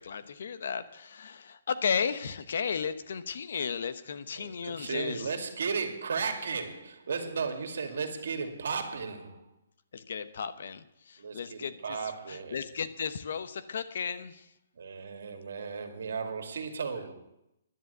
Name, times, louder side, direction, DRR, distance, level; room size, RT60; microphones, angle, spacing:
voice 1, 0.0-5.3 9.9-14.5, left 6 dB, 60° left, 13 dB, 1.0 m, -34 dB
voice 2, 4.4-9.5 11.2-12.6 14.8-17.1, right 5 dB, 70° right, 5 dB, 2.3 m, -35 dB
10.5 x 10.5 x 8.1 m, 0.86 s
hypercardioid pair, 170°, 0 cm